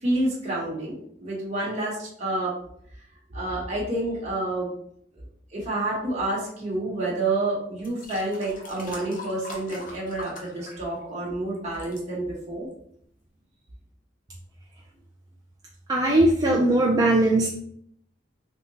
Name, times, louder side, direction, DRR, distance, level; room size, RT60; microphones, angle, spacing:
voice 1, 0.0-2.6 3.3-4.7 5.5-12.7, right 2 dB, 35° right, -6 dB, 1.0 m, -29 dB
sound 1, 7.2-7.3 7.8-11.3 11.5-12.0 12.7-12.8, left 2 dB, 45° left, 0.6 m, -42 dB
voice 2, 15.9-17.6, right 1 dB, 20° right, -3 dB, 0.3 m, -20 dB
3.5 x 2.8 x 2.7 m, 0.68 s
head